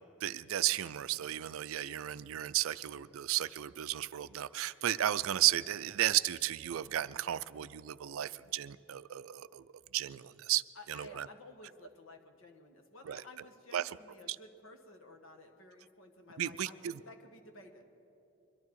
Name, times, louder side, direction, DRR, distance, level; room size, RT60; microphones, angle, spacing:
voice 1, 0.2-9.6 9.9-10.6 10.9-11.3 13.1-13.2 13.7-13.9 16.4-16.9, right 13 dB, 75° right, 16 dB, 0.4 m, -33 dB
voice 2, 10.7-17.8, left 2 dB, 70° left, 4 dB, 1.4 m, -54 dB
23.0 x 12.0 x 4.7 m, 3.0 s
head